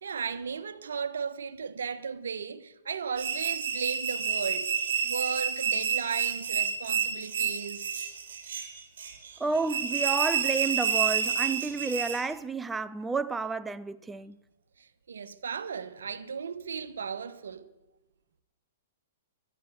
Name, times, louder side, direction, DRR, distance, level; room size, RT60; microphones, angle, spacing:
voice 1, 0.0-4.7 5.0-8.0 14.8-17.7, right 6 dB, 80° right, 1.1 m, -35 dB
sound 1, 3.2-12.3, right 7 dB, 65° right, 3.3 m, -29 dB
voice 2, 9.4-14.4, right 4 dB, 10° right, 0.4 m, -31 dB
11.5 x 11.0 x 9.4 m
hypercardioid pair, 125°, 0 cm